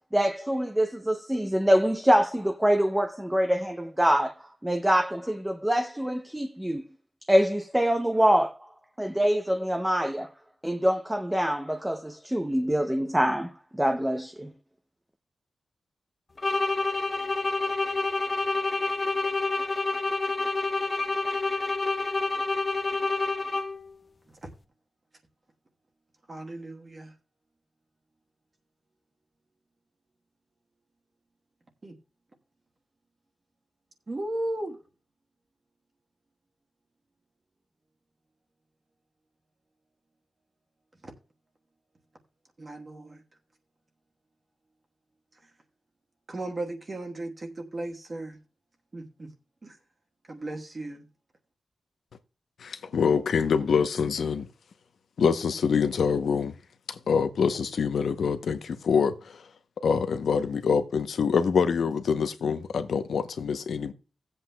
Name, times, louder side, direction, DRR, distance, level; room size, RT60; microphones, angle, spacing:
voice 1, 0.1-6.8 7.3-8.7 9.0-10.3 10.6-14.5, equal, 5° right, 0.6 m, -25 dB
sound 1, 16.4-23.9, left 3 dB, 30° left, 0.7 m, -28 dB
voice 2, 26.3-27.1 31.8-31.9 34.1-34.8 41.0-41.1 42.6-43.2 46.3-48.4 48.9-49.3 49.6-49.8 50.3-51.0, right 2 dB, 30° right, 1.2 m, -35 dB
voice 3, 52.6-54.5 55.2-56.5 56.9-59.4 59.8-63.9, left 6 dB, 85° left, 0.7 m, -25 dB
17.0 x 7.8 x 2.2 m
wide cardioid pair, 165°, 0 cm